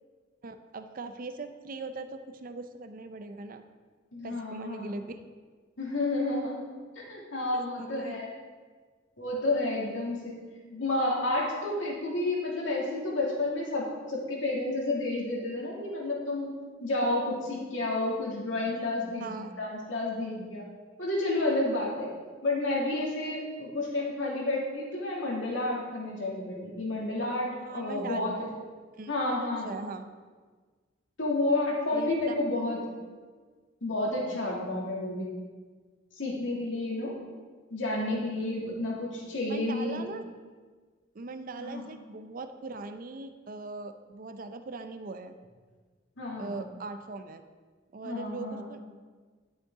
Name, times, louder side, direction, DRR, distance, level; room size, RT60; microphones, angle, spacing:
voice 1, 0.4-3.6 4.2-5.2 7.5-8.2 9.7-9.8 19.2-19.5 27.6-28.2 29.0-30.1 31.9-32.3 39.5-40.2 41.1-45.4 46.4-47.4 47.9-48.8, right 3 dB, 45° right, 9 dB, 0.5 m, -40 dB
voice 2, 4.1-4.9 5.8-6.6 7.0-8.3 9.2-10.4 10.7-16.5 16.8-20.6 21.0-22.1 22.4-28.5 29.1-29.7 31.2-32.9 33.8-35.3 36.1-37.2 37.7-40.1 41.6-41.9 46.2-46.5 48.0-48.7, left 2 dB, 80° left, -3 dB, 2.4 m, -30 dB
11.0 x 8.1 x 3.7 m, 1.5 s
head